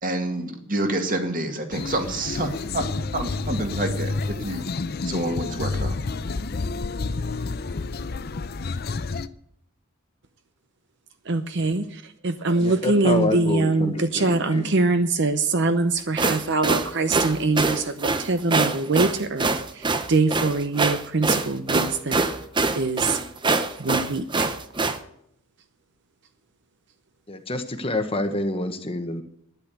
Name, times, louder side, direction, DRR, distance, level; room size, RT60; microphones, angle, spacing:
voice 1, 0.0-2.9 3.1-4.7 5.0-6.0, right 1 dB, 40° right, 5 dB, 2.0 m, -28 dB
sound 1, 1.7-9.3, left 3 dB, 45° left, 0.5 m, -29 dB
voice 2, 11.3-22.2 22.7-23.2 23.8-24.5, right 3 dB, 55° right, 9 dB, 0.8 m, -23 dB
voice 3, 12.6-14.7 27.3-29.2, left 1 dB, 25° left, 7 dB, 1.1 m, -27 dB
sound 2, 16.0-25.0, right 3 dB, 20° right, 0.7 m, -24 dB
12.0 x 10.0 x 8.2 m, 0.73 s
head